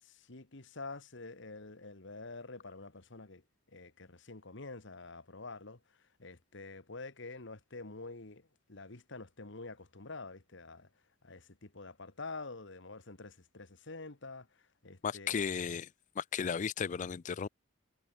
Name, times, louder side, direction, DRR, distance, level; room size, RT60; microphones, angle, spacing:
voice 1, 0.0-3.4 3.7-10.9 11.2-15.4, left 3 dB, 60° left, 1.8 m, -47 dB
voice 2, 15.0-15.9 16.2-17.5, left 6 dB, 40° left, 0.4 m, -35 dB
head